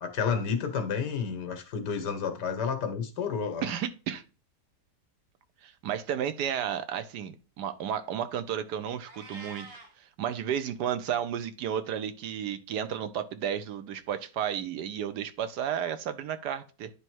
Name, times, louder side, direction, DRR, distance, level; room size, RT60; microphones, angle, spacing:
voice 1, 0.0-3.7, left 6 dB, 80° left, 1.6 m, -30 dB
voice 2, 3.6-4.2 5.6-9.7 10.2-16.9, right 9 dB, 75° right, 1.3 m, -32 dB
Meow, 9.1-9.9, right 2 dB, 40° right, 1.3 m, -46 dB
9.9 x 3.3 x 4.6 m
omnidirectional pair, 1.8 m